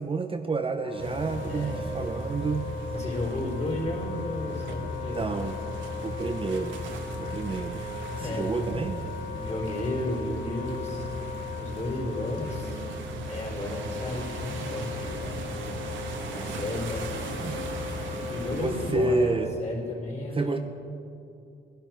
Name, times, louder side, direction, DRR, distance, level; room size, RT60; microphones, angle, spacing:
voice 1, 0.0-2.7 5.1-5.6 6.0-6.8 7.2-7.8 8.2-9.0 17.4-17.6 18.5-19.6 20.3-20.6, right 3 dB, 25° right, 6 dB, 0.7 m, -29 dB
Wind instrument woodwind instrument, 0.8-19.5, left 6 dB, 70° left, 1.9 m, -39 dB
sound 1, 1.0-19.0, right 1 dB, 70° right, 1.6 m, -37 dB
voice 2, 1.5-2.1 2.9-5.2 8.2-8.8 9.4-11.1 11.6-12.8 13.3-15.5 16.3-17.4 17.7-17.8 18.3-20.6, left 1 dB, 30° left, -2 dB, 4.0 m, -33 dB
18.5 x 11.5 x 4.6 m, 2.7 s
cardioid pair, 90°, 20 cm